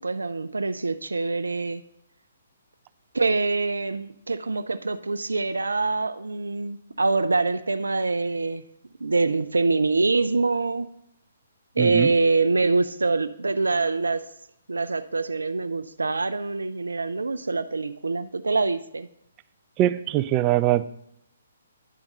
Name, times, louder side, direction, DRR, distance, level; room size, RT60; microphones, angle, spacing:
voice 1, 0.0-1.8 3.1-8.7 9.0-10.9 11.8-14.3 14.7-19.1, right 3 dB, 90° right, 11 dB, 0.4 m, -25 dB
voice 2, 11.8-12.1 19.8-20.9, right 14 dB, 25° right, 12 dB, 0.4 m, -22 dB
10.0 x 3.5 x 5.4 m, 0.75 s
hypercardioid pair, 140°, 0 cm